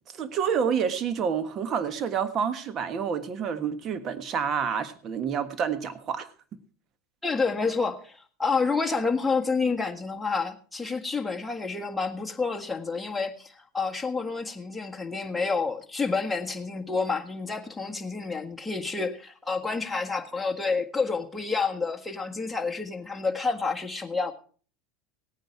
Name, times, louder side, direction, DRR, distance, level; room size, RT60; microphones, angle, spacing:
voice 1, 0.1-6.3, right 7 dB, 45° right, 1.4 m, -28 dB
voice 2, 7.2-24.3, left 4 dB, 10° left, 1.6 m, -29 dB
17.0 x 9.3 x 4.5 m
hypercardioid pair, 85°, 0 cm